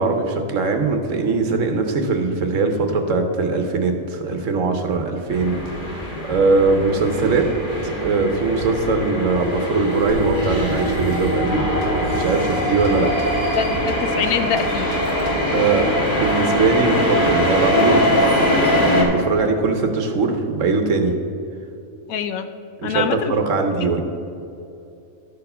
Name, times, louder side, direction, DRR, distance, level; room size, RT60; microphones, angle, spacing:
voice 1, 0.0-6.0 6.3-7.5 7.8-11.7 12.1-13.1 15.5-15.8 16.2-18.0 18.5-21.2 22.8-24.0, right 4 dB, 60° right, 5 dB, 1.1 m, -21 dB
sound 1, 5.3-19.0, left 1 dB, 35° left, 1.7 m, -22 dB
sound 2, 10.1-15.6, right 1 dB, 60° left, 1.5 m, -32 dB
voice 2, 13.6-15.0 22.1-22.5 22.8-23.4, left 7 dB, 75° left, 8 dB, 1.0 m, -24 dB
11.5 x 4.6 x 5.4 m, 2.7 s
omnidirectional pair, 1.6 m